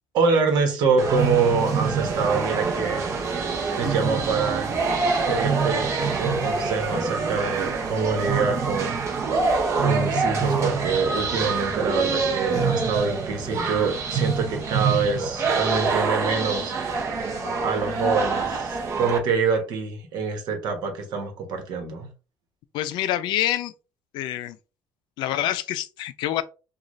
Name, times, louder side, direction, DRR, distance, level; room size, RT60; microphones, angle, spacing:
voice 1, 0.1-3.0 3.8-4.8 5.3-5.9 6.2-9.0 9.8-16.7 17.6-22.1, right 4 dB, 60° right, 1.1 m, -25 dB
sound 1, 1.0-19.2, right 4 dB, 40° right, 0.8 m, -25 dB
voice 2, 22.7-23.7 24.1-24.6 25.2-26.4, left 13 dB, 75° left, 0.4 m, -26 dB
3.8 x 2.3 x 3.1 m
cardioid pair, 175°, 8 cm